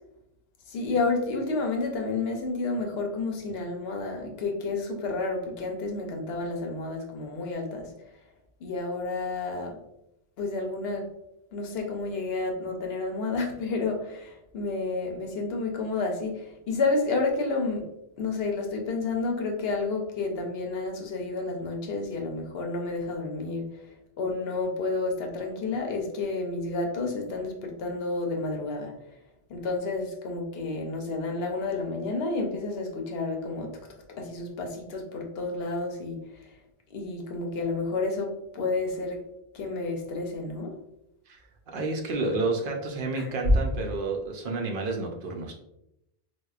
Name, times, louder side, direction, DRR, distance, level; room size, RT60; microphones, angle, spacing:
voice 1, 0.7-7.9 8.6-9.8 10.4-11.1 11.5-17.9 18.2-23.7 24.2-28.9 29.5-33.8 34.1-36.5 36.9-39.2 39.5-40.8 43.1-43.3, left 3 dB, 75° left, 2 dB, 0.9 m, -30 dB
voice 2, 41.7-45.5, right 3 dB, 65° right, 2 dB, 0.7 m, -30 dB
4.5 x 2.1 x 2.3 m, 0.84 s
omnidirectional pair, 1.1 m